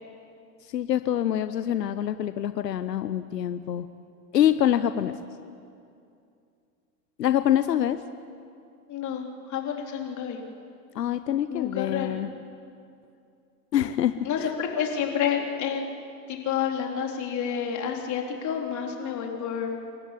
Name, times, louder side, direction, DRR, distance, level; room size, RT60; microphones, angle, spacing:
voice 1, 0.6-3.9 4.3-5.2 7.2-8.0 10.9-12.3 13.7-14.5, left 11 dB, 90° left, 12 dB, 0.9 m, -25 dB
voice 2, 8.9-10.4 11.5-12.2 14.2-15.9 16.3-19.7, left 8 dB, 35° left, 1 dB, 3.8 m, -29 dB
27.0 x 13.5 x 9.9 m, 2.5 s
hypercardioid pair, 105°, 48 cm